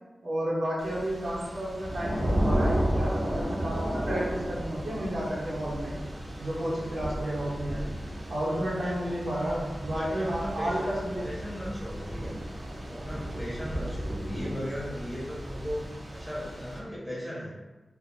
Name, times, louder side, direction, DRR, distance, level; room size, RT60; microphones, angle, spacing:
voice 1, 0.2-6.0 6.4-7.9 8.3-11.3, right 1 dB, 80° right, -7 dB, 0.9 m, -32 dB
Thunder / Rain, 0.8-16.8, equal, 50° right, 0.6 m, -33 dB
voice 2, 7.6-8.1 9.8-10.9 11.2-12.4 12.9-17.5, equal, 5° left, -7 dB, 0.9 m, -37 dB
2.5 x 2.2 x 2.6 m, 1.2 s
wide cardioid pair, 75°, 0 cm